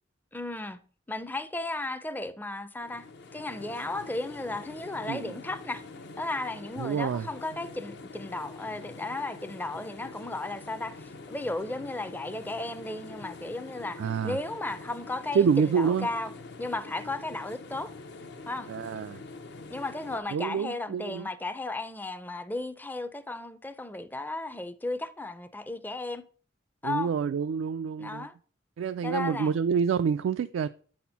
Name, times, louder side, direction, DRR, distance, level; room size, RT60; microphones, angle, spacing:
voice 1, 0.3-0.8 1.1-3.1 3.3-5.8 6.2-16.3 16.6-17.9 18.5-18.7 19.7-26.2 26.8-27.1 28.0-28.3 29.0-29.5, left 2 dB, 10° left, 0.4 m, -35 dB
sound 1, 2.8-20.2, left 3 dB, 60° left, 0.7 m, -45 dB
voice 2, 6.8-7.3 14.0-14.4 15.3-16.1 18.7-19.2 20.3-21.3 26.8-28.3 28.8-30.7, right 6 dB, 85° right, 0.3 m, -27 dB
8.2 x 4.3 x 5.6 m
head